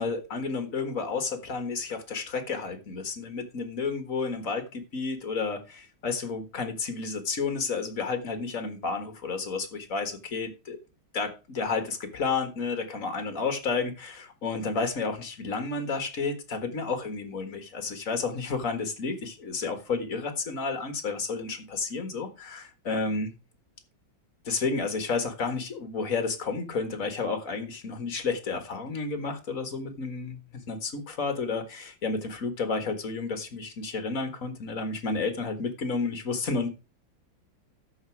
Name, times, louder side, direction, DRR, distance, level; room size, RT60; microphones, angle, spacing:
voice 1, 0.0-10.8 11.1-23.3 24.5-36.7, left 4 dB, 45° left, 2.0 m, -31 dB
13.5 x 5.9 x 4.7 m
omnidirectional pair, 2.1 m